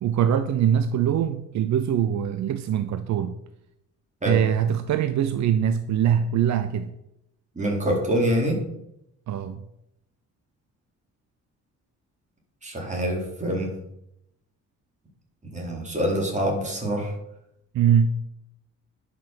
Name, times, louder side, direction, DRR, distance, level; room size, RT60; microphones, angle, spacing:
voice 1, 0.0-3.3 4.2-6.9 9.3-9.6 17.7-18.1, right 9 dB, 65° right, 10 dB, 0.8 m, -23 dB
voice 2, 7.6-8.6 12.6-13.8 15.5-17.1, equal, 25° right, -1 dB, 4.1 m, -25 dB
10.5 x 6.3 x 7.4 m, 0.81 s
cardioid pair, 90°, 30 cm